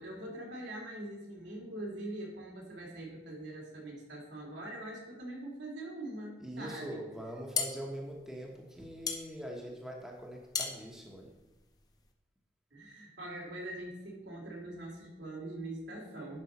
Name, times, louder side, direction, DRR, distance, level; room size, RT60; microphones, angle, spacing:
voice 1, 0.0-7.0 12.7-16.4, right 1 dB, 80° right, -2 dB, 2.5 m, -43 dB
voice 2, 6.4-11.3, equal, 5° right, -1 dB, 1.1 m, -43 dB
sound 1, 7.2-12.1, left 5 dB, 20° left, 0.7 m, -38 dB
10.5 x 5.4 x 4.2 m, 1.1 s
head